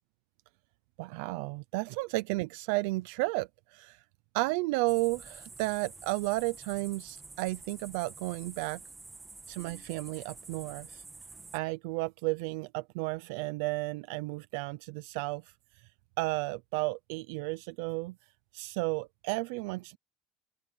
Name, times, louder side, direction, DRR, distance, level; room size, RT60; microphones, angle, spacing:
voice 1, 1.0-4.0 4.3-8.8 9.5-11.0 11.5-15.4 16.2-18.2 18.5-20.0, right 23 dB, 85° right, 0.6 m, -33 dB
sound 1, 4.9-11.6, right 3 dB, 15° right, 2.2 m, -49 dB
open air
cardioid pair, 135°, 0 cm